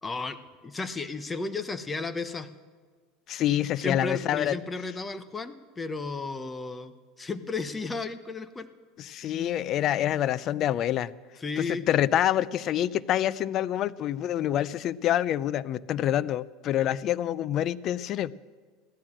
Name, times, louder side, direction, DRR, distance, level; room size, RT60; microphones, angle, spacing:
voice 1, 0.0-2.5 3.8-8.7 11.4-11.9, left 3 dB, 15° left, 11 dB, 0.9 m, -34 dB
voice 2, 3.3-4.5 9.0-11.1 11.6-18.3, left 11 dB, 40° left, 18 dB, 0.5 m, -27 dB
15.5 x 11.5 x 7.5 m, 1.5 s
supercardioid pair, 135°, 0 cm